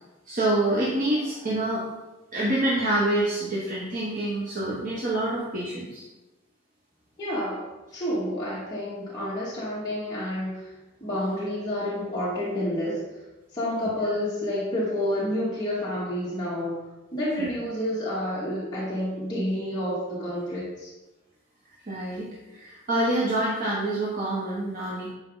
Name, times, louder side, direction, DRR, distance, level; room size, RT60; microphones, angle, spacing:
voice 1, 0.2-1.9 2.3-6.0 17.4-17.5 21.8-25.1, right 1 dB, 45° right, -6 dB, 1.4 m, -26 dB
voice 2, 7.2-7.7 7.9-10.7 11.0-13.0 13.5-16.7 17.1-20.9, left 1 dB, 20° left, -10 dB, 2.2 m, -29 dB
11.0 x 4.9 x 4.0 m, 1.1 s
head